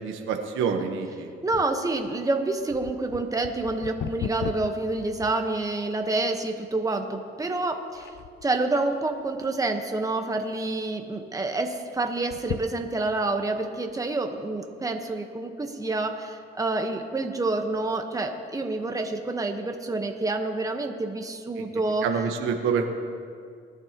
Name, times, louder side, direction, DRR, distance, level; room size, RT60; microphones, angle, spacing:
voice 1, 0.0-1.3 21.6-21.7 22.0-22.8, right 6 dB, 90° right, 4 dB, 1.2 m, -27 dB
voice 2, 1.4-8.1 8.4-22.1, right 2 dB, 15° right, 4 dB, 1.1 m, -28 dB
sound 1, 1.5-6.0 6.6-6.7 7.3-7.6 7.9-8.6 9.1-9.8 10.2-10.3 10.5-10.6 12.1-13.3 13.9-14.0, left 10 dB, 65° left, 0.5 m, -38 dB
21.0 x 11.0 x 3.0 m, 2.2 s
cardioid pair, 90°, 20 cm